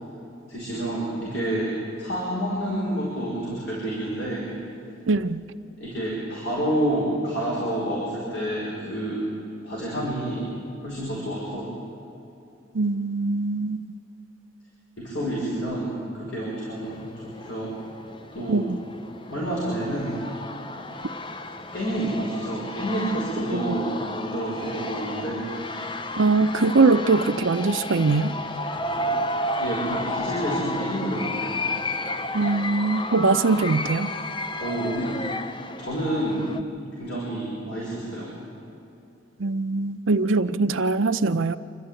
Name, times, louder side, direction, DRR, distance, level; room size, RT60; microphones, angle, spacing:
voice 1, 0.5-4.5 5.8-9.3 9.6-10.4 10.8-11.7 15.0-17.0 17.4-17.7 18.3-18.6 19.3-20.2 21.7-25.5 29.6-31.6 34.6-35.1 35.8-36.5 37.0-38.3, right 1 dB, 80° left, -6 dB, 5.6 m, -28 dB
voice 2, 5.1-5.5 12.7-13.9 18.5-18.8 23.5-23.7 26.2-28.4 32.3-34.1 39.4-41.6, right 3 dB, 90° right, 10 dB, 0.7 m, -22 dB
sound 1, 16.8-36.6, left 1 dB, 25° left, 0.6 m, -32 dB
27.0 x 12.5 x 9.0 m, 2.9 s
head